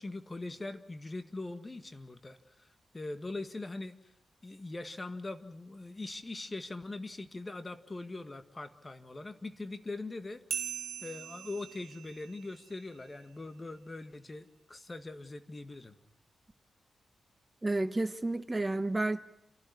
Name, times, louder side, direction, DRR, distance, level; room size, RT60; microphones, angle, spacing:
voice 1, 0.0-2.7 2.9-3.9 4.4-10.4 11.0-16.0, left 2 dB, 30° left, 1.7 m, -42 dB
sound 1, 10.5-13.6, right 8 dB, 85° right, 2.0 m, -42 dB
voice 2, 17.6-19.2, right 2 dB, 25° right, 1.0 m, -31 dB
30.0 x 12.0 x 9.6 m
cardioid pair, 50°, 0 cm